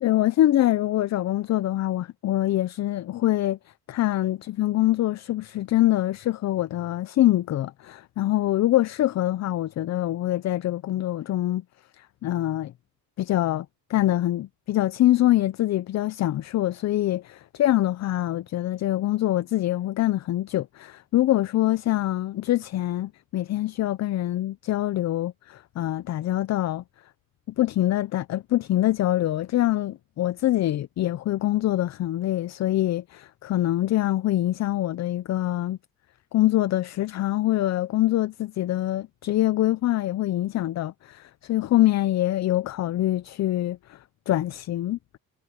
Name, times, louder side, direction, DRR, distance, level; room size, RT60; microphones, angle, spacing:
voice 1, 0.0-3.6 3.9-11.6 12.0-12.7 13.2-26.8 27.6-35.8 36.3-44.0 44.3-45.0, left 14 dB, 50° left, 0.5 m, -24 dB
cardioid pair, 120°, 36 cm